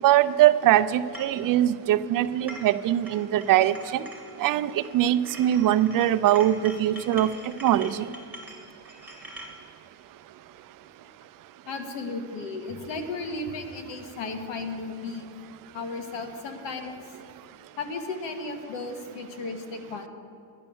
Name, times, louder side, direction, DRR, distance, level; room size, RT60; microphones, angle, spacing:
voice 1, 0.0-4.0 4.4-7.3 7.6-8.1, right 12 dB, 50° right, 12 dB, 0.5 m, -22 dB
sound 1, 1.1-1.4 2.2-2.8 3.1-4.9 5.2-9.5, equal, 5° right, 2.2 m, -44 dB
voice 2, 11.7-15.3 15.7-17.0 17.8-20.1, left 3 dB, 80° left, 6 dB, 1.7 m, -34 dB
12.5 x 10.0 x 7.1 m, 2.6 s
cardioid pair, 150°, 43 cm